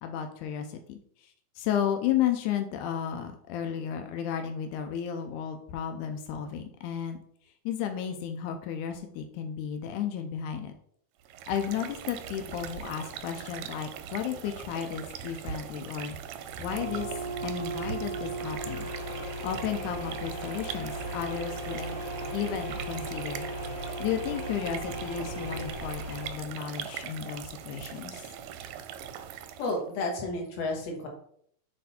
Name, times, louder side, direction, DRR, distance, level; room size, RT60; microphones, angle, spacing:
voice 1, 0.0-7.2 7.7-10.7 11.5-16.2 16.6-17.1 17.4-18.9 19.2-22.0 22.3-23.5 23.8-28.3, left 9 dB, 90° left, 6 dB, 2.1 m, -33 dB
sound 1, 11.2-29.8, right 9 dB, 80° right, 1.6 m, -41 dB
sound 2, 16.6-26.3, right 1 dB, 20° left, 1.6 m, -36 dB
voice 2, 29.6-31.1, left 2 dB, 60° left, 0 dB, 2.5 m, -31 dB
7.7 x 3.3 x 4.2 m, 0.66 s
omnidirectional pair, 3.5 m